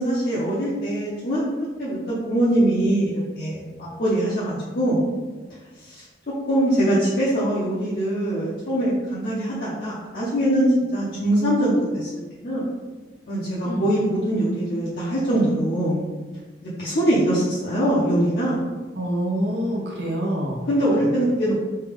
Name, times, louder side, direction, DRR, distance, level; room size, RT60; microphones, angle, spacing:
voice 1, 0.0-1.4 1.8-5.0 5.8-6.0 6.5-12.1 12.4-12.7 13.3-16.0 16.6-18.6 20.7-21.5, right 1 dB, 55° left, -9 dB, 0.7 m, -22 dB
voice 2, 18.9-20.6 21.0-21.1, equal, 80° right, -2 dB, 0.8 m, -26 dB
3.3 x 2.2 x 3.5 m, 1.3 s
head